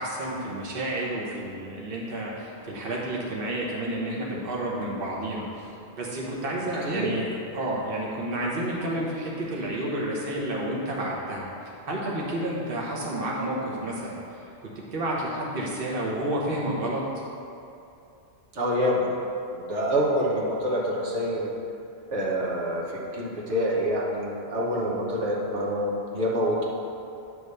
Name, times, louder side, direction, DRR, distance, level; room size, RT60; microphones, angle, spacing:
voice 1, 0.0-5.7 6.0-11.4 11.9-17.0, right 1 dB, 55° right, -4 dB, 1.2 m, -30 dB
voice 2, 18.5-19.1 19.5-21.5 22.1-26.6, equal, 80° right, -4 dB, 1.5 m, -26 dB
9.2 x 3.2 x 6.7 m, 2.7 s
omnidirectional pair, 1.2 m